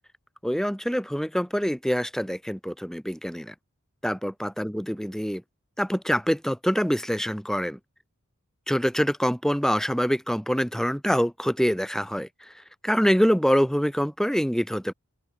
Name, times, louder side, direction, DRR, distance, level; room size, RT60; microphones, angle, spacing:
voice 1, 0.4-3.5 4.0-5.4 5.8-7.8 8.7-12.5 12.8-14.9, equal, ahead, 4.5 m, -25 dB
open air
head